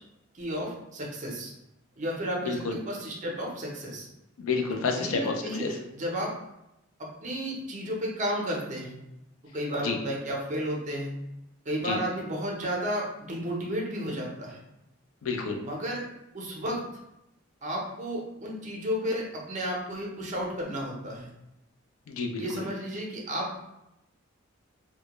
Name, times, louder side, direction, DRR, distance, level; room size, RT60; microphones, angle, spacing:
voice 1, 0.3-1.5 2.0-4.1 5.0-6.3 7.0-9.0 9.5-11.1 11.7-14.6 15.6-16.0 16.3-16.8 17.6-21.3 22.4-23.6, equal, 35° right, -2 dB, 0.5 m, -32 dB
voice 2, 2.4-2.8 4.4-5.8 9.8-10.0 11.8-12.0 15.2-15.6 22.1-22.6, left 4 dB, 80° left, 3 dB, 0.4 m, -30 dB
2.1 x 2.1 x 2.9 m, 0.88 s
head